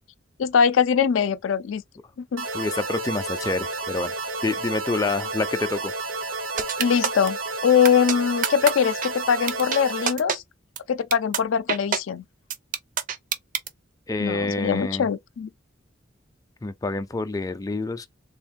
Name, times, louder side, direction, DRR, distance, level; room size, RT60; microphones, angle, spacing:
voice 1, 0.4-1.8 2.3-2.5 6.8-10.4 10.9-12.2 14.2-15.5, left 7 dB, 90° left, 0.4 m, -22 dB
sound 1, 2.4-10.1, right 3 dB, 85° right, 0.7 m, -31 dB
voice 2, 2.5-4.1 4.4-5.9 14.1-15.1 16.6-18.1, left 3 dB, 20° left, 0.4 m, -27 dB
sound 2, 6.6-7.3 7.8-8.1 8.4-8.7 9.0-9.1 9.5-9.8 10.1-10.4 10.8-10.9 11.1-11.4 11.7-12.0 12.5-13.7, right 7 dB, 45° right, 0.5 m, -25 dB
3.5 x 2.4 x 3.5 m
head